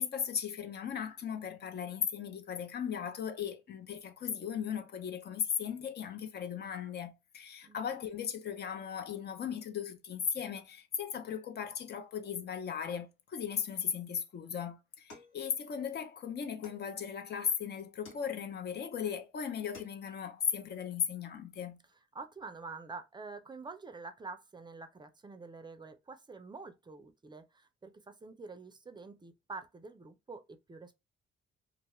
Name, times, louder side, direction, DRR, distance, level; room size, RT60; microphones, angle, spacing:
voice 1, 0.0-21.8, left 7 dB, 55° left, 0.6 m, -37 dB
sound 1, 15.1-16.0 16.6-17.4 18.0-18.7 19.2-19.3 19.6-20.3, left 3 dB, 85° left, 1.2 m, -56 dB
voice 2, 22.1-31.0, right 4 dB, 20° right, 0.4 m, -47 dB
2.4 x 2.2 x 3.0 m
cardioid pair, 90°, 20 cm